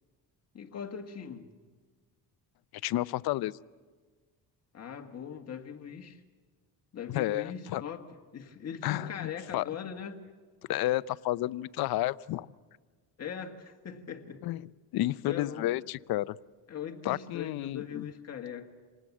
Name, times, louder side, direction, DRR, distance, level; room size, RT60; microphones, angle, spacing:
voice 1, 0.5-1.5 4.7-6.2 6.9-10.2 13.2-14.4 15.3-15.8 16.7-18.7, left 7 dB, 40° left, 5 dB, 1.7 m, -40 dB
voice 2, 2.8-3.5 7.1-7.8 8.8-9.6 10.7-12.5 14.4-14.6 14.9-16.4 17.0-18.1, left 15 dB, 65° left, 17 dB, 0.6 m, -31 dB
27.0 x 19.0 x 7.3 m, 1.4 s
cardioid pair, 145°, 39 cm